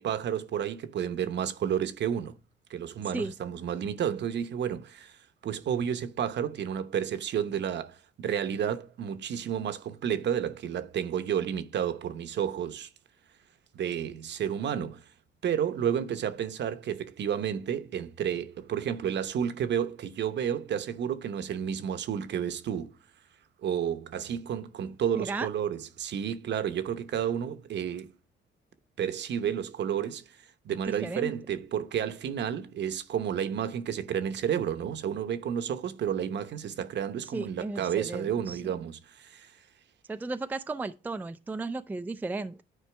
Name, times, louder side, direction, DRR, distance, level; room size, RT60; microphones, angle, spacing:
voice 1, 0.0-2.4 2.7-5.2 5.4-12.9 13.7-15.0 15.4-22.9 23.6-28.1 29.0-30.4 30.6-39.5, right 9 dB, 60° right, 0.9 m, -31 dB
voice 2, 25.2-25.5 30.9-31.3 37.3-38.7 40.1-42.6, right 3 dB, 10° right, 0.4 m, -35 dB
10.0 x 4.5 x 3.3 m
cardioid pair, 90°, 20 cm